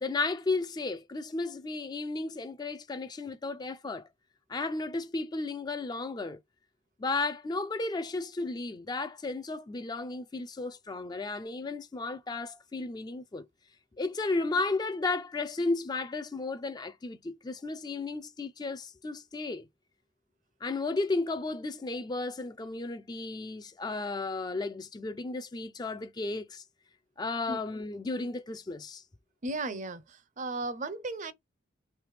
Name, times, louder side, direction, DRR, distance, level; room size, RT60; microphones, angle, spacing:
voice 1, 0.0-4.1 4.5-6.4 7.0-13.5 14.0-19.7 20.6-26.6 27.2-29.0, left 3 dB, 20° left, 0.3 m, -34 dB
voice 2, 29.4-31.3, right 2 dB, 40° right, 0.6 m, -35 dB
3.3 x 3.1 x 4.7 m
head